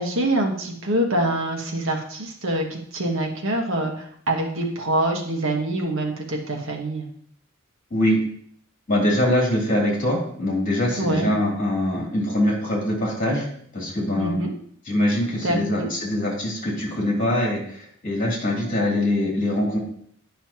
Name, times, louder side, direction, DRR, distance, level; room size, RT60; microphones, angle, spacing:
voice 1, 0.0-7.1 11.0-11.3 14.2-14.5 15.4-15.9, right 1 dB, 65° right, 2 dB, 1.3 m, -25 dB
voice 2, 8.9-13.5 13.7-14.4 14.8-19.8, left 1 dB, 40° left, -3 dB, 3.0 m, -23 dB
10.0 x 5.6 x 2.9 m, 0.63 s
head